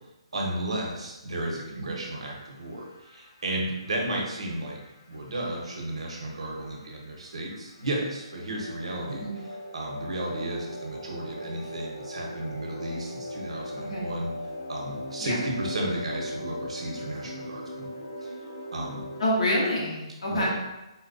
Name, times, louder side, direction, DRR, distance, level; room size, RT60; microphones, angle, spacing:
voice 1, 0.3-4.8 5.1-9.2 9.7-14.3 14.7-17.9 18.2-18.3 18.7-19.0 20.3-20.5, right 1 dB, 85° right, -1 dB, 0.9 m, -33 dB
sound 1, 2.0-19.2, equal, 30° left, 0.5 m, -39 dB
voice 2, 13.8-14.1 15.2-15.4 19.2-20.5, left 1 dB, 85° left, -3 dB, 1.1 m, -27 dB
4.1 x 2.2 x 2.5 m, 0.98 s
hypercardioid pair, 180°, 3 cm